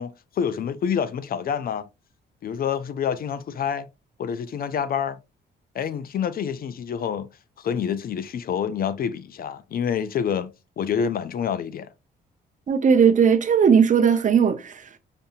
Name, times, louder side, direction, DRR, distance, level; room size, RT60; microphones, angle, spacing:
voice 1, 0.0-1.9 2.4-3.9 4.2-5.2 5.7-7.3 7.6-10.5 10.8-11.9, left 7 dB, 50° left, 0.4 m, -27 dB
voice 2, 12.7-15.0, right 7 dB, 40° right, 0.5 m, -18 dB
5.2 x 2.6 x 2.3 m
cardioid pair, 90°, 20 cm